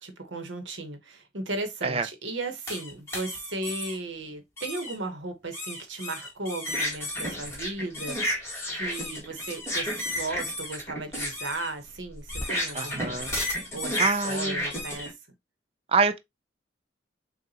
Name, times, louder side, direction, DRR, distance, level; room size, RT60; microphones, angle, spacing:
voice 1, 0.0-13.4 13.7-15.1, right 2 dB, 80° right, 1.1 m, -36 dB
sound 1, 2.7-4.0 4.6-4.9 5.5-15.1, left 1 dB, 15° left, 1.7 m, -32 dB
voice 2, 12.8-13.3 14.0-14.6 15.9-16.2, right 4 dB, 30° right, 0.4 m, -26 dB
6.7 x 2.4 x 2.8 m
head